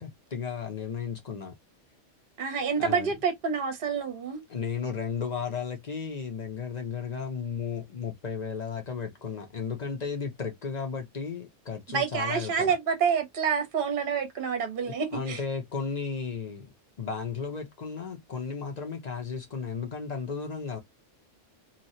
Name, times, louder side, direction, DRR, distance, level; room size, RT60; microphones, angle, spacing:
voice 1, 0.0-1.5 2.8-3.1 4.5-12.7 14.9-20.8, left 6 dB, 40° left, 0.8 m, -34 dB
voice 2, 2.4-4.4 11.9-15.4, right 6 dB, 45° right, 1.0 m, -28 dB
2.9 x 2.4 x 2.7 m
omnidirectional pair, 1.3 m